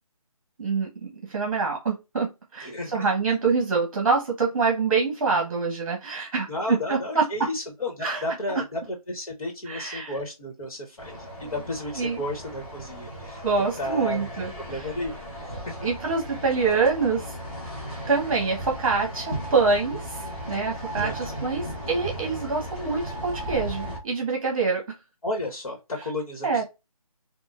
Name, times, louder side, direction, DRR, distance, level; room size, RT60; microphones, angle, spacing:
voice 1, 0.6-7.3 8.0-8.2 9.6-10.2 12.0-12.2 13.4-14.9 15.8-17.4 18.1-24.9 26.4-26.6, right 4 dB, 35° right, 1 dB, 1.0 m, -25 dB
voice 2, 2.6-3.1 6.5-11.1 11.4-14.3 14.6-15.8 21.0-21.3 25.2-26.6, left 1 dB, 65° left, 0 dB, 1.3 m, -33 dB
sound 1, 11.0-24.0, equal, 15° left, 1.1 m, -36 dB
3.7 x 2.3 x 2.4 m, 0.24 s
figure-of-eight pair, 160°, 19 cm